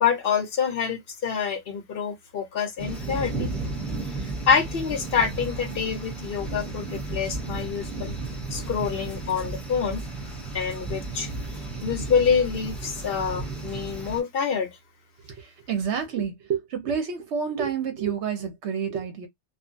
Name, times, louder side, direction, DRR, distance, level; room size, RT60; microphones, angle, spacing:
voice 1, 0.0-3.5 4.5-8.1 8.5-10.0 10.5-11.3 11.8-14.7, left 6 dB, 60° left, 0.8 m, -26 dB
sound 1, 2.8-14.2, right 3 dB, ahead, 0.9 m, -33 dB
voice 2, 15.4-19.3, right 7 dB, 75° right, 1.1 m, -29 dB
2.6 x 2.4 x 2.5 m
omnidirectional pair, 1.2 m